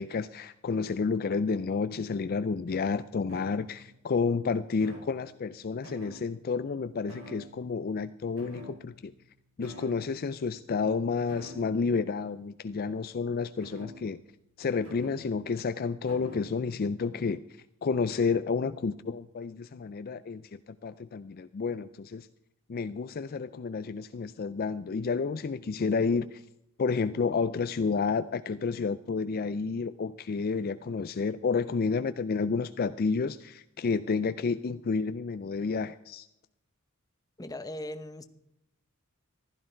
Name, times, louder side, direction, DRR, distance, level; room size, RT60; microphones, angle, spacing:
voice 1, 0.0-9.1 9.6-14.2 14.6-17.4 17.8-22.3 22.7-26.4 26.8-36.3, left 4 dB, 45° left, 12 dB, 0.4 m, -30 dB
sound 1, 3.3-4.0 4.8-5.5 5.8-6.5 7.1-7.8 8.4-9.2 9.6-10.1 11.3-11.9 13.6-14.3 14.8-15.3 16.1-16.7, left 1 dB, 80° right, 4.0 m, -48 dB
voice 2, 37.4-38.2, left 1 dB, 15° left, 10 dB, 0.8 m, -38 dB
15.0 x 13.0 x 4.5 m, 0.83 s
head